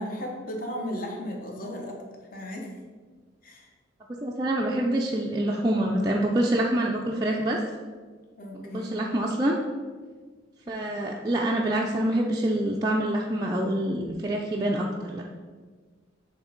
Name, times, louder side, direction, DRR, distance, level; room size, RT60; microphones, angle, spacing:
voice 1, 0.0-2.0 2.3-2.7 3.4-3.7 8.4-9.1, equal, 45° left, 0 dB, 1.0 m, -35 dB
voice 2, 4.2-7.6 8.5-9.6 10.7-15.2, right 1 dB, 20° right, -2 dB, 0.4 m, -26 dB
6.2 x 3.4 x 5.1 m, 1.5 s
head